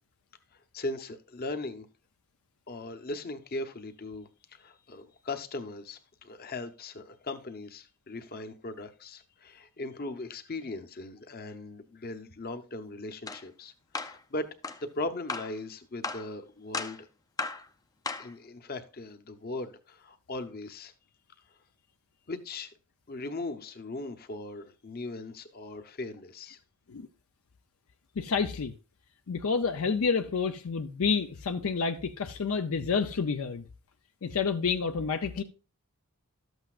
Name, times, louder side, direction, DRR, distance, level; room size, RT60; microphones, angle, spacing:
voice 1, 0.7-1.9 2.7-14.5 14.8-17.1 18.2-20.9 22.3-22.7 23.1-26.6, left 2 dB, 40° left, 0.9 m, -39 dB
sound 1, 13.3-13.4 13.9-14.2 14.6-14.8 15.3-15.5 16.0-16.3 16.7-17.0 17.4-17.6 18.1-18.3, left 3 dB, 15° left, 0.5 m, -35 dB
voice 2, 28.2-28.7 29.3-33.7 34.2-35.4, left 5 dB, 70° left, 0.5 m, -29 dB
12.5 x 8.0 x 2.4 m
head